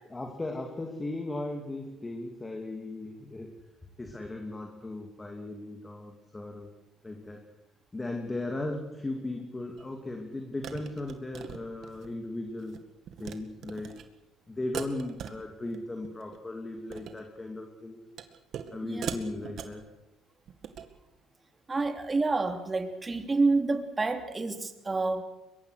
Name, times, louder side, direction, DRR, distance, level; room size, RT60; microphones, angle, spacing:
voice 1, 0.1-3.5 4.0-6.7 7.0-7.4 7.9-12.8 13.2-14.0 14.5-18.0 18.7-19.8, left 2 dB, 20° left, 3 dB, 2.8 m, -37 dB
sound 1, 9.8-9.9 10.6-12.1 12.5-12.8 13.1-13.4 13.6-14.0 14.7-15.8 16.0-16.4 16.8-17.2 18.2-18.7 19.0-19.8 20.5-20.9, right 9 dB, 60° right, 2.2 m, -40 dB
voice 2, 21.7-25.2, right 3 dB, 20° right, 6 dB, 3.1 m, -28 dB
23.0 x 22.5 x 6.6 m, 0.97 s
cardioid pair, 95°, 0 cm